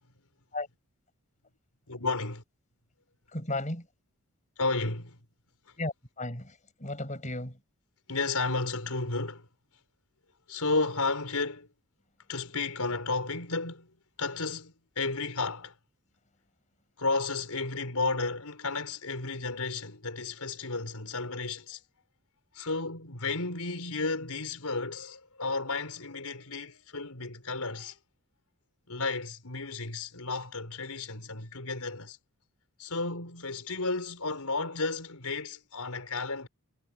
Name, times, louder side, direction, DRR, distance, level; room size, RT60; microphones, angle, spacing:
voice 1, 1.9-2.4 4.6-5.2 8.1-9.5 10.5-11.7 12.3-13.9 14.2-15.8 17.0-21.8 22.5-28.0 28.9-32.2 32.8-36.5, left 3 dB, 85° left, 4.7 m, -33 dB
voice 2, 3.3-3.9 5.8-7.6, left 2 dB, 35° left, 5.3 m, -35 dB
head